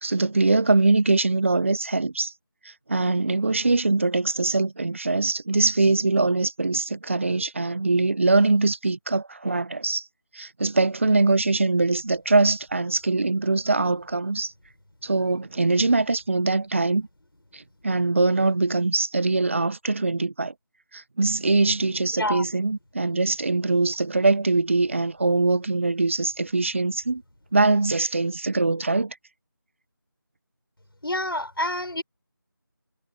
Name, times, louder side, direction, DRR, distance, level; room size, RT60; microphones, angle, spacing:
voice 1, 0.0-2.3 2.6-10.0 10.3-14.5 15.0-17.1 17.5-20.5 20.9-27.2 27.5-29.2, right 3 dB, 35° right, 1.3 m, -22 dB
voice 2, 31.0-32.0, left 1 dB, 85° left, 5.5 m, -27 dB
figure-of-eight pair, 170°, 12 cm